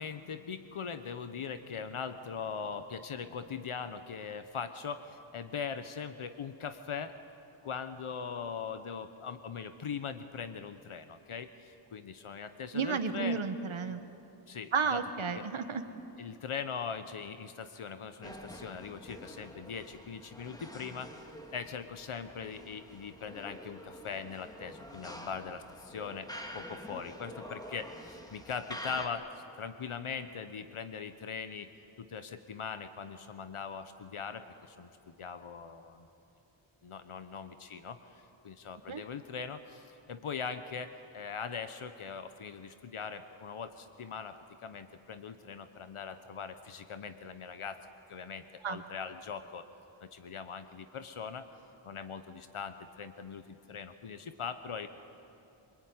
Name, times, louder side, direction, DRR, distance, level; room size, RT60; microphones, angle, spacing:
voice 1, 0.0-7.2 7.6-13.4 14.5-15.0 15.3-15.5 16.2-26.3 26.5-31.7 32.0-36.1 36.8-47.8 48.1-49.7 50.0-51.5 51.8-54.9, left 6 dB, 75° left, 9 dB, 1.1 m, -41 dB
voice 2, 12.7-14.0 14.7-15.8 38.9-39.0 48.6-48.8, right 5 dB, 70° right, 8 dB, 1.4 m, -32 dB
sound 1, 18.2-29.1, equal, 5° left, 2.1 m, -47 dB
26.0 x 22.5 x 9.6 m, 2.9 s
wide cardioid pair, 115°, 50 cm